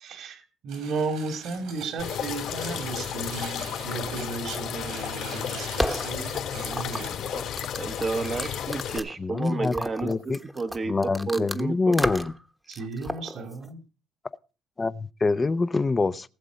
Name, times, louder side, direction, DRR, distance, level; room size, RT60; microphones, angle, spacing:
voice 1, 0.0-7.3 12.7-13.8, right 3 dB, 65° right, 2.6 m, -34 dB
sound 1, 0.7-7.1, right 6 dB, 85° right, 6.5 m, -43 dB
sound 2, 2.0-9.0, left 9 dB, 70° left, 2.4 m, -33 dB
sound 3, 5.2-11.6 11.9-12.4 12.7-13.7, equal, 5° right, 1.1 m, -33 dB
voice 2, 7.8-10.9 11.3-12.1, right 3 dB, 30° right, 1.0 m, -31 dB
voice 3, 9.2-9.7 10.0-10.4 10.9-12.3 14.8-16.3, left 3 dB, 25° left, 0.7 m, -25 dB
19.0 x 7.4 x 5.2 m
cardioid pair, 110°, 0 cm